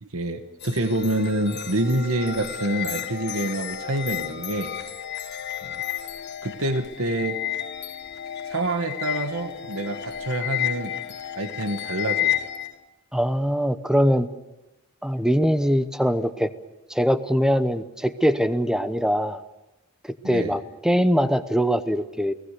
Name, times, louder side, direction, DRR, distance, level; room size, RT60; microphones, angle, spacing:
voice 1, 0.0-4.7 5.6-5.8 6.4-7.4 8.5-11.0 11.4-12.4 20.2-20.6, right 1 dB, 80° right, 8 dB, 1.6 m, -27 dB
sound 1, 0.6-12.7, left 11 dB, 50° left, 1.4 m, -32 dB
voice 2, 13.1-14.3 15.0-16.5 16.9-19.4 20.0-22.3, equal, 5° right, 11 dB, 0.8 m, -22 dB
29.5 x 19.0 x 6.7 m, 1.0 s
head